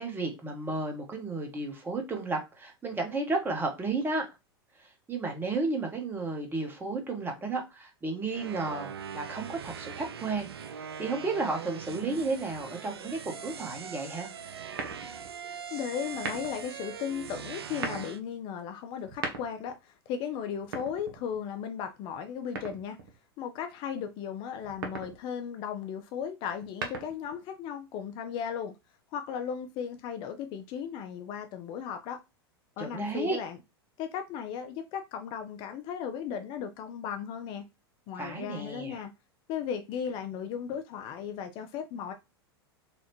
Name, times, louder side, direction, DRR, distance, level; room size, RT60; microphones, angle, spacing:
voice 1, 0.0-4.3 4.8-14.3 32.8-33.4 38.2-39.0, right 3 dB, 15° right, 1.1 m, -33 dB
sound 1, 8.3-18.2, right 7 dB, 75° right, 0.4 m, -41 dB
sound 2, 14.7-15.4 16.1-16.7 17.6-18.1 19.0-19.8 20.6-21.5 22.6-23.2 24.6-25.2 26.5-27.4, right 4 dB, 60° right, 1.0 m, -38 dB
voice 2, 15.4-23.0 23.4-28.8 29.1-32.2 32.8-33.6 34.0-37.7 38.1-39.1 39.5-42.1, left 8 dB, 40° left, 0.5 m, -36 dB
4.1 x 2.3 x 3.0 m
figure-of-eight pair, 90°, 13 cm